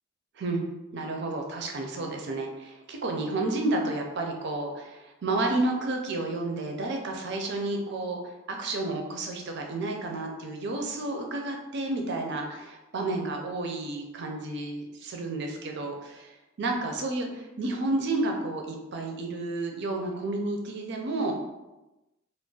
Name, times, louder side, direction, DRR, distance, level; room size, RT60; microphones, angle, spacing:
voice 1, 0.9-8.2 8.5-21.4, right 2 dB, 55° right, 2 dB, 0.5 m, -31 dB
2.3 x 2.0 x 3.8 m, 1.0 s
head